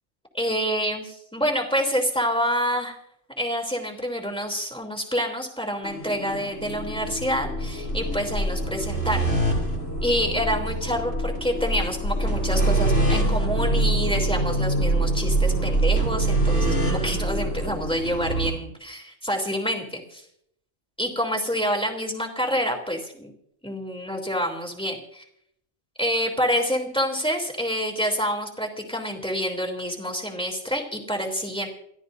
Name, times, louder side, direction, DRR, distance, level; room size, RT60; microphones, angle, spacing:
voice 1, 0.3-3.0 3.4-9.3 10.0-20.2 21.0-23.3 23.6-25.2 26.0-31.7, equal, 5° left, 2 dB, 3.3 m, -27 dB
sound 1, 5.8-18.5, right 2 dB, 85° left, 6.8 m, -24 dB
29.5 x 13.0 x 2.7 m, 0.72 s
omnidirectional pair, 1.2 m